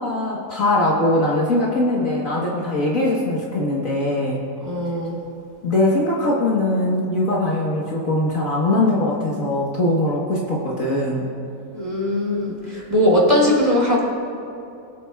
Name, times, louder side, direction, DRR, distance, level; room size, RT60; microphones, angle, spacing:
voice 1, 0.0-4.4 5.6-11.2, left 1 dB, 50° left, -5 dB, 1.6 m, -21 dB
voice 2, 4.7-5.2 11.7-12.5 12.9-14.0, left 1 dB, 20° right, -6 dB, 2.9 m, -19 dB
23.0 x 8.4 x 2.3 m, 2.7 s
omnidirectional pair, 2.0 m